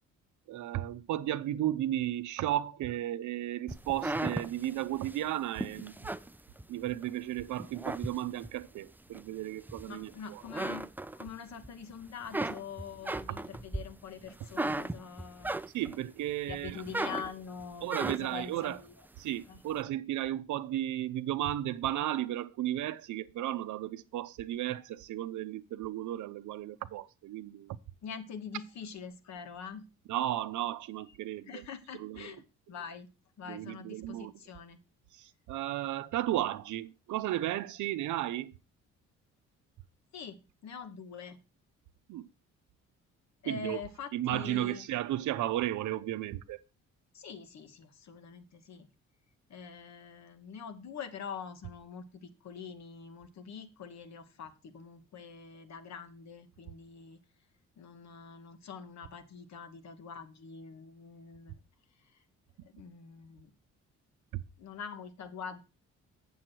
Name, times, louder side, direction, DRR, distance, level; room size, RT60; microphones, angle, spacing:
voice 1, 0.5-6.0 6.7-10.4 15.7-16.8 17.8-18.8 19.2-27.8 30.1-31.6 32.0-32.3 33.5-34.3 35.1-38.5 42.1-42.3 43.4-43.8 44.1-46.6, right 13 dB, 75° right, 0.6 m, -34 dB
sound 1, 3.7-7.1 7.5-8.6 9.1-10.1 10.4-11.7 12.0-16.1 16.5-18.5, right 2 dB, 5° right, 0.4 m, -36 dB
voice 2, 9.9-15.5 16.5-18.9 19.5-19.6 28.0-29.8 31.1-31.2 31.5-32.4 32.7-33.1 33.4-34.8 40.1-41.4 43.4-44.9 47.1-48.9 49.5-57.2 57.8-61.6 62.0-62.2 62.6-63.5 64.6-65.6, left 6 dB, 65° left, 1.3 m, -45 dB
7.7 x 7.1 x 4.5 m
cardioid pair, 90°, 30 cm